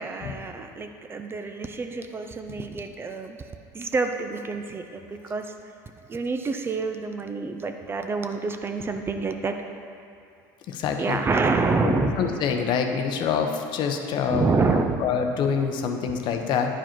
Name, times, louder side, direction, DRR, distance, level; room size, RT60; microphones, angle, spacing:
voice 1, 0.0-3.4 3.7-5.5 6.1-9.5 11.0-12.2 14.3-15.1 16.1-16.2, right 4 dB, 25° right, 6 dB, 0.5 m, -27 dB
voice 2, 10.7-11.2 11.8-14.5 15.0-16.7, left 6 dB, 50° left, 4 dB, 0.8 m, -26 dB
9.8 x 4.9 x 4.5 m, 2.4 s
supercardioid pair, 105°, 10 cm